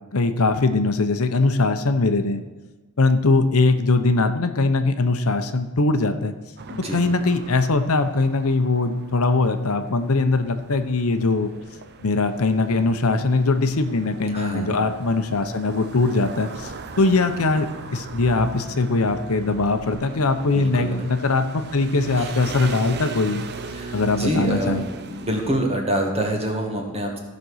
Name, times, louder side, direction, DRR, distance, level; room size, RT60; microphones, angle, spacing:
voice 1, 0.1-2.4 3.0-6.3 6.9-11.5 12.0-23.4 23.9-24.8, left 3 dB, 70° left, 8 dB, 0.8 m, -21 dB
sound 1, 6.6-25.6, right 3 dB, 50° right, 0.7 m, -38 dB
voice 2, 6.7-7.0 14.3-14.8 20.5-20.9 22.2-22.3 23.7-27.2, right 1 dB, 30° right, 1 dB, 1.9 m, -26 dB
15.0 x 5.3 x 6.3 m, 1.2 s
head